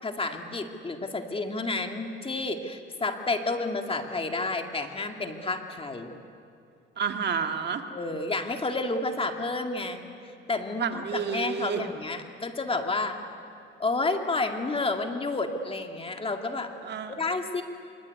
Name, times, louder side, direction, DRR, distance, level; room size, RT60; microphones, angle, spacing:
voice 1, 0.0-6.2 7.9-10.0 10.5-13.2 13.8-16.7 17.2-17.6, left 3 dB, 30° left, 4 dB, 2.3 m, -30 dB
voice 2, 7.0-7.8 10.8-11.9 16.8-17.2, right 6 dB, 60° right, 5 dB, 2.0 m, -30 dB
25.5 x 23.0 x 9.5 m, 2.6 s
cardioid pair, 90°, 20 cm